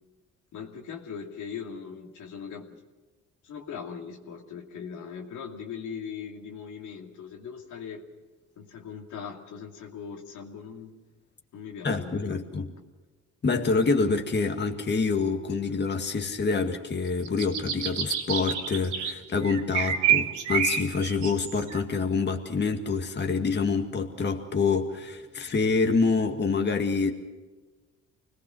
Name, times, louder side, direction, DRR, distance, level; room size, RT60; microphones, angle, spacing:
voice 1, 0.5-2.8 3.4-8.0 8.6-10.9 11.5-12.6, left 6 dB, 80° left, 2 dB, 2.5 m, -40 dB
voice 2, 11.8-12.7 13.4-27.1, left 4 dB, 35° left, 4 dB, 2.1 m, -26 dB
sound 1, 17.1-19.1 19.4-21.8, right 8 dB, 85° right, 3.1 m, -28 dB
25.5 x 19.0 x 6.4 m, 1.3 s
cardioid pair, 90°, 30 cm